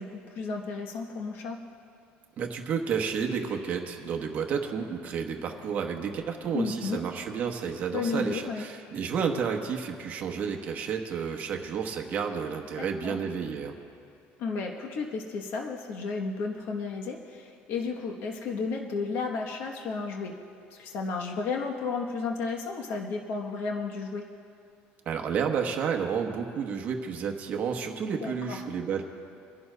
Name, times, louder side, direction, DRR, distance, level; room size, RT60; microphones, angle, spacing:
voice 1, 0.0-1.6 6.5-7.0 7.9-8.6 12.8-13.1 14.4-20.3 20.7-24.2 28.2-28.6, left 4 dB, 55° left, 1 dB, 1.0 m, -33 dB
voice 2, 2.4-13.7 25.1-29.0, right 6 dB, 35° right, 2 dB, 1.0 m, -31 dB
28.5 x 11.0 x 2.2 m, 2.5 s
cardioid pair, 165°, 4 cm